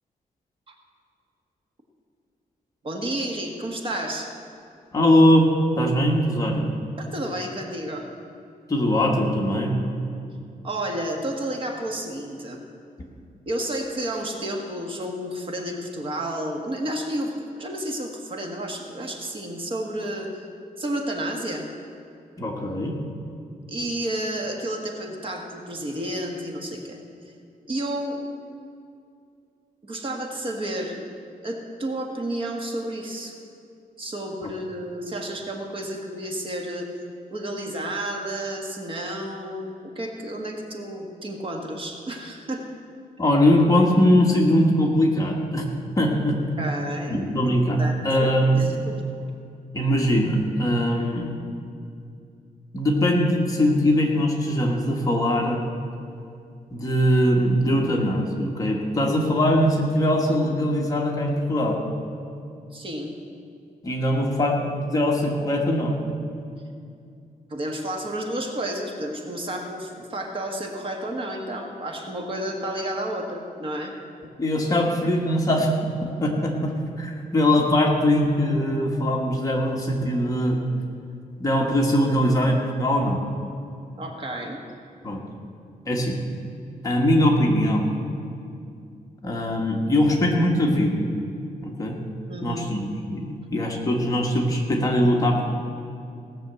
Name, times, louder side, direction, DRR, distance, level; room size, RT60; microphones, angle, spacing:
voice 1, 2.8-4.3 7.0-8.0 10.6-12.6 13.4-20.3 20.8-21.7 23.7-27.0 27.7-28.2 29.8-31.1 31.4-33.4 34.0-36.9 37.3-42.6 46.6-48.3 48.5-49.0 62.7-63.1 67.5-73.9 84.0-84.6 92.3-92.7, right 1 dB, 40° right, 2 dB, 1.5 m, -31 dB
voice 2, 4.9-5.5 5.8-6.6 8.7-9.7 22.4-22.9 34.4-34.5 43.2-45.7 46.0-46.4 47.1-48.7 49.7-51.3 52.7-55.6 56.7-61.8 63.8-65.9 74.4-75.7 76.2-80.6 81.4-83.2 85.0-85.2 85.8-86.2 86.8-87.9 89.2-91.0 91.6-92.0 92.4-95.4, equal, 25° left, -1 dB, 1.5 m, -21 dB
17.5 x 6.6 x 8.0 m, 2.5 s
wide cardioid pair, 180°, 15 cm